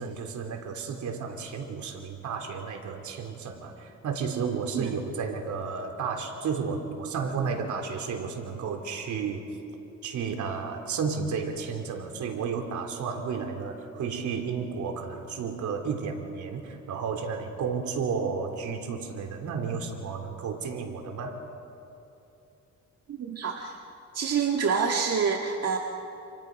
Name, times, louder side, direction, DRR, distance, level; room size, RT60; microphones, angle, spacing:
voice 1, 0.0-9.5 10.0-21.4, right 5 dB, 75° right, 4 dB, 3.4 m, -32 dB
voice 2, 23.1-23.8 24.1-25.8, right 6 dB, 55° right, 1 dB, 1.9 m, -27 dB
29.0 x 28.5 x 5.3 m, 2.8 s
cardioid pair, 90°, 30 cm